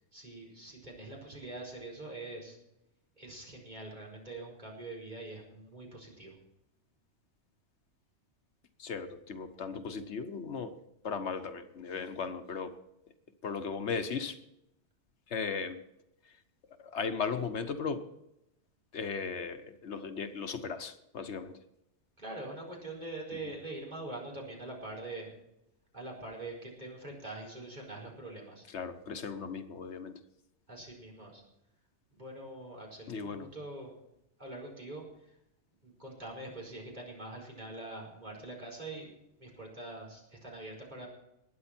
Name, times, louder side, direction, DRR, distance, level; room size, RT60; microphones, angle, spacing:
voice 1, 0.1-2.6 3.2-6.3 22.2-25.3 25.9-28.6 30.7-31.4 32.1-33.9 34.4-35.0 35.8-39.1 39.4-41.1, right 2 dB, 40° right, -1 dB, 4.9 m, -44 dB
voice 2, 8.8-10.8 11.0-12.8 13.4-14.4 15.3-15.8 16.2-16.3 16.8-18.0 18.9-21.6 28.7-30.1 33.1-33.5, left 5 dB, 80° left, 9 dB, 1.3 m, -37 dB
21.0 x 9.5 x 4.4 m, 0.83 s
omnidirectional pair, 1.2 m